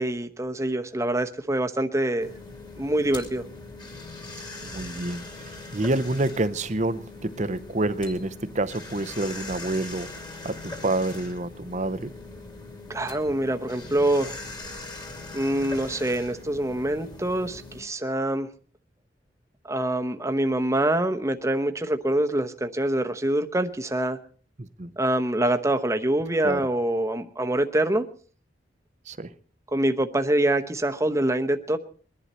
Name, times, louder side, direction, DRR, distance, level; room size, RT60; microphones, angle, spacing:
voice 1, 0.0-2.3 2.8-3.4 12.9-14.3 15.3-18.5 19.6-24.2 25.0-28.0 29.7-31.8, right 1 dB, 15° right, 0.9 m, -25 dB
sound 1, 2.2-17.8, left 2 dB, 25° left, 2.4 m, -41 dB
voice 2, 4.6-5.2 5.7-12.1 24.6-24.9 26.4-26.6 29.1-29.3, right 2 dB, 40° right, 0.7 m, -28 dB
22.5 x 11.0 x 4.3 m
head